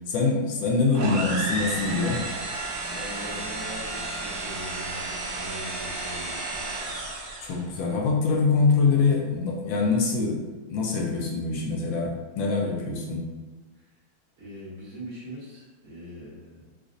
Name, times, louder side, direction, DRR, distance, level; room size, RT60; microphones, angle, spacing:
voice 1, 0.1-2.2 7.4-10.4 10.7-13.2, left 4 dB, 75° left, -1 dB, 1.4 m, -24 dB
sound 1, 0.9-7.6, right 2 dB, 85° right, 0.6 m, -32 dB
voice 2, 2.9-6.6 14.4-16.7, equal, 45° right, -9 dB, 1.5 m, -41 dB
4.1 x 2.4 x 2.5 m, 1.3 s
omnidirectional pair, 2.2 m